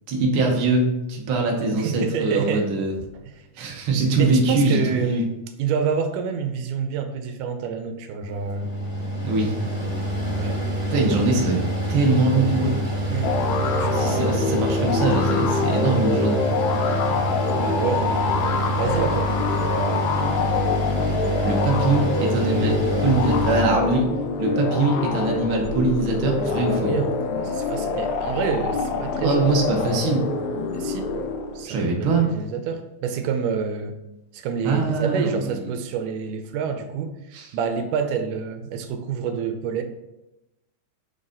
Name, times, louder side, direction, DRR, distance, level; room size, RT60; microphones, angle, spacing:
voice 1, 0.1-2.9 3.5-5.2 9.2-9.6 10.9-11.6 11.9-12.8 13.9-16.4 21.4-24.1 24.4-26.9 29.1-30.2 31.6-32.3 34.6-35.4 37.3-37.5, right 3 dB, 60° right, 0 dB, 1.4 m, -22 dB
voice 2, 1.7-2.7 4.2-5.3 5.6-8.7 10.4-10.6 13.1-13.3 13.8-14.3 17.6-18.2 18.8-19.4 26.6-29.5 30.7-31.1 31.6-34.0 34.3-39.8, right 6 dB, 85° right, 7 dB, 2.2 m, -28 dB
Mechanical fan, 8.2-23.6, right 1 dB, 15° right, 1.4 m, -27 dB
sound 1, 13.2-31.6, left 4 dB, 75° left, 1.8 m, -25 dB
6.7 x 4.0 x 3.7 m, 0.94 s
omnidirectional pair, 3.6 m